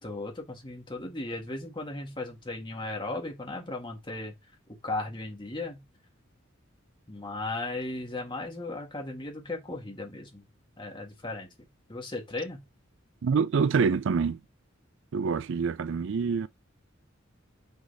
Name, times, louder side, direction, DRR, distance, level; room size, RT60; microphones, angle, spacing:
voice 1, 0.0-4.3 4.8-5.8 7.1-10.4 10.8-11.5 11.9-12.6, left 2 dB, 25° left, 1.8 m, -36 dB
voice 2, 13.2-14.4 15.1-16.5, right 5 dB, 65° right, 0.4 m, -26 dB
6.1 x 4.0 x 3.9 m
head